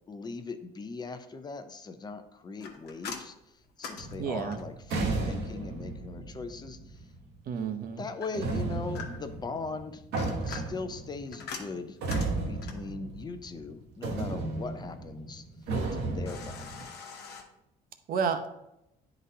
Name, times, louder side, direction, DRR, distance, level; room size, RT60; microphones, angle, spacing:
voice 1, 0.1-3.3 3.8-7.0 8.0-10.0 10.4-12.0 12.5-15.4 15.9-16.9, left 4 dB, 25° left, 9 dB, 0.6 m, -40 dB
sound 1, 2.6-4.9 8.2-9.4 10.0-12.9 16.3-17.4, left 5 dB, 75° left, 1.1 m, -43 dB
sound 2, 4.0-7.4 8.3-13.7 14.0-16.8, right 3 dB, 80° right, 1.1 m, -34 dB
voice 2, 4.2-4.6 7.5-8.1 18.1-18.5, right 6 dB, 60° right, 8 dB, 0.7 m, -31 dB
9.7 x 3.9 x 2.7 m, 0.85 s
cardioid pair, 110°, 17 cm